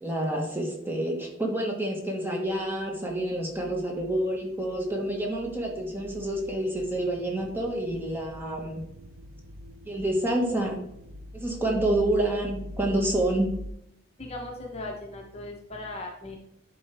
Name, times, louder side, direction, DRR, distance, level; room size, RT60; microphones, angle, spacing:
voice 1, 0.0-8.8 9.8-10.8 11.3-13.5, right 1 dB, 10° right, 0 dB, 1.2 m, -28 dB
sound 1, 2.5-13.7, equal, 75° right, 0.6 m, -44 dB
voice 2, 14.2-16.4, left 2 dB, 30° left, 1 dB, 0.9 m, -38 dB
10.5 x 4.4 x 3.4 m, 0.76 s
head